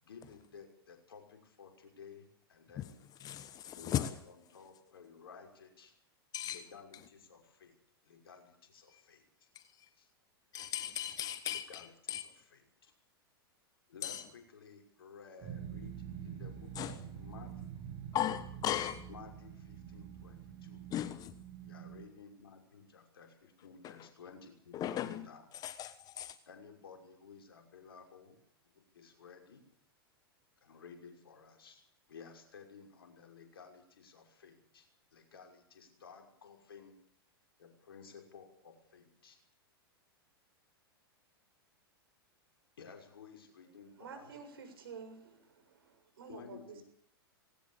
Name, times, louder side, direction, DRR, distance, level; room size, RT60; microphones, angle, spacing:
voice 1, 0.0-3.0 3.8-5.9 6.4-7.8 8.0-9.5 9.9-10.1 11.7-12.9 13.9-17.9 19.1-20.9 21.6-25.5 26.5-28.4 28.7-29.7 30.6-37.0 37.6-39.4 42.8-44.4 46.3-46.8, left 5 dB, 70° left, 6.1 m, -55 dB
voice 2, 3.2-4.1 6.3-6.6 8.9-9.0 9.5-9.6 10.5-12.2 14.0-14.2 16.8-17.0 18.1-19.1 20.9-21.3 24.7-25.3 25.6-26.4, left 11 dB, 30° left, 1.2 m, -37 dB
sound 1, 15.4-22.0, right 9 dB, 40° right, 7.4 m, -46 dB
voice 3, 44.0-46.6, right 5 dB, 65° right, 7.4 m, -50 dB
19.5 x 18.5 x 8.7 m
figure-of-eight pair, 100°, 13 cm